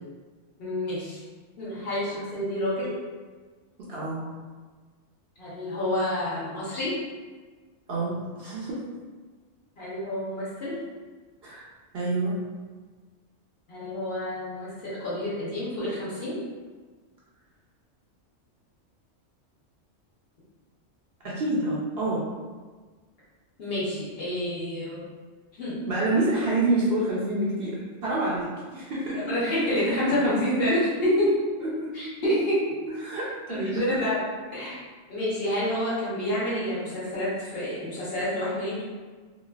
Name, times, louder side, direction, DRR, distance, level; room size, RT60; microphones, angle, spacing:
voice 1, 0.6-1.2 1.6-2.9 5.4-6.9 9.8-10.8 13.7-16.4 23.6-25.1 25.5-25.8 29.1-31.3 31.9-32.8 33.5-34.2 34.5-34.8 35.1-38.8, left 1 dB, 50° left, -9 dB, 1.1 m, -28 dB
voice 2, 3.8-4.2 7.9-8.8 11.4-11.6 11.9-12.4 21.2-22.2 25.9-29.3 30.1-30.2 31.6-31.9 33.0-33.9, right 2 dB, 60° right, -7 dB, 0.7 m, -27 dB
3.1 x 2.5 x 2.3 m, 1.4 s
omnidirectional pair, 1.3 m